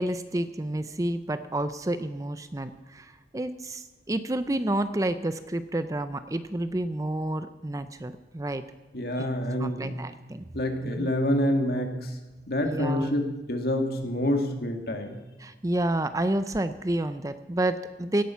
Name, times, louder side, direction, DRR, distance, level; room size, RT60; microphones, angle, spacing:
voice 1, 0.0-8.6 9.2-9.3 9.6-10.4 11.0-11.1 12.6-13.1 15.4-18.2, right 1 dB, 20° right, 11 dB, 0.5 m, -29 dB
voice 2, 8.9-10.0 10.5-12.2 12.5-15.2, left 1 dB, 60° left, 4 dB, 2.1 m, -27 dB
17.0 x 11.5 x 5.8 m, 1.2 s
head